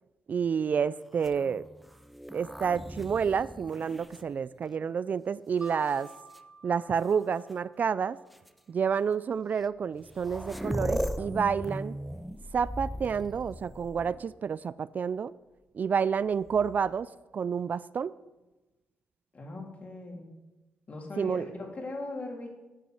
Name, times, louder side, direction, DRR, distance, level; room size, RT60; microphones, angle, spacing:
voice 1, 0.3-1.6 2.3-6.1 6.6-8.2 8.7-12.0 12.5-15.3 15.7-18.1 21.2-21.5, right 6 dB, 50° right, 0.3 m, -29 dB
sound 1, 1.1-5.0 5.7-6.4 7.5-7.6 8.3-8.5 9.6-9.7 9.9-14.4 16.3-17.0, equal, ahead, 0.6 m, -38 dB
Mallet percussion, 5.6-8.4, right 2 dB, 20° right, 1.8 m, -50 dB
voice 2, 19.3-20.3 20.9-22.5, left 2 dB, 40° left, 3.3 m, -39 dB
10.0 x 7.1 x 7.7 m
cardioid pair, 70°, 4 cm